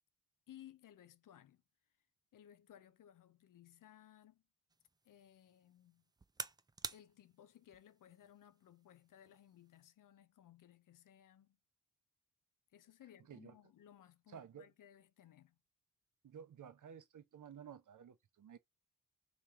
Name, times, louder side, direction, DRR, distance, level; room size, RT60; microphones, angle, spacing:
voice 1, 0.5-1.6 2.3-4.4 5.0-6.0 6.9-11.6 12.7-15.6, left 11 dB, 55° left, 0.5 m, -61 dB
sound 1, 4.7-9.9, right 3 dB, 10° right, 0.3 m, -52 dB
voice 2, 14.3-14.7 16.2-18.6, right 8 dB, 50° right, 0.7 m, -54 dB
3.1 x 3.1 x 3.5 m
supercardioid pair, 45°, 38 cm